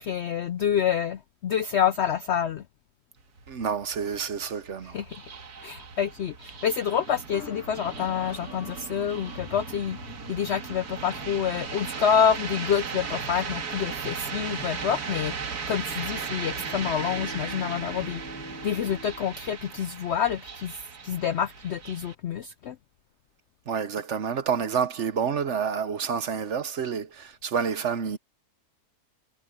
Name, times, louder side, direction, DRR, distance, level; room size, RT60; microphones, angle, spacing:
voice 1, 0.0-2.6 4.8-5.2 5.6-10.0 10.3-15.3 15.7-18.2 18.6-22.8, left 8 dB, 70° left, 0.6 m, -27 dB
sound 1, 3.2-22.2, right 5 dB, 80° right, 2.2 m, -37 dB
voice 2, 3.5-5.0 23.7-28.2, right 7 dB, 55° right, 1.0 m, -28 dB
sound 2, 7.3-11.4, left 9 dB, 55° left, 1.1 m, -46 dB
Bowed string instrument, 16.0-20.6, left 1 dB, 10° left, 3.3 m, -45 dB
omnidirectional pair, 1.6 m